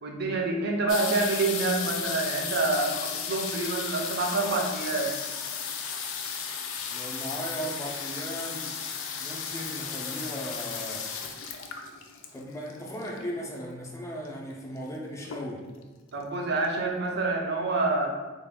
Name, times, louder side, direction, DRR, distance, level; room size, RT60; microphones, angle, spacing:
voice 1, 0.0-5.1 16.1-18.1, right 3 dB, 55° right, 2 dB, 0.5 m, -27 dB
sound 1, 0.9-13.4 14.2-14.3 14.5-14.9 15.2-15.8 16.4-16.5 16.6-16.7, left 6 dB, 85° left, 0.4 m, -34 dB
voice 2, 6.9-8.8 9.2-11.1 12.3-15.7, equal, 15° left, -1 dB, 0.4 m, -37 dB
3.3 x 2.2 x 3.5 m, 1.3 s
head